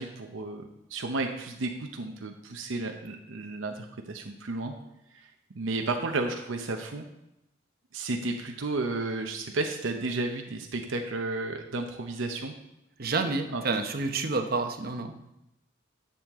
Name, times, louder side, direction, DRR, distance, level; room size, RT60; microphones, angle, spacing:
voice 1, 0.0-4.7 5.5-7.1 7.9-12.5 13.5-13.6, right 2 dB, 85° right, 3 dB, 0.8 m, -32 dB
voice 2, 13.0-15.1, right 3 dB, 50° right, 6 dB, 0.8 m, -29 dB
10.5 x 7.1 x 3.6 m, 0.87 s
head